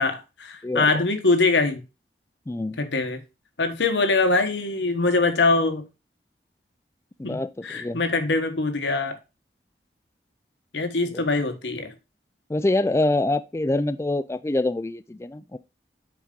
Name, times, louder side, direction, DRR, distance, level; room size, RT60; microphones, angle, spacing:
voice 1, 0.0-1.8 2.8-3.2 3.6-5.9 7.2-9.2 10.7-11.9, left 3 dB, 85° left, 1.3 m, -23 dB
voice 2, 0.6-1.0 2.5-2.8 7.2-8.0 11.1-11.2 12.5-15.6, left 2 dB, 15° left, 0.3 m, -25 dB
7.1 x 4.9 x 3.8 m
head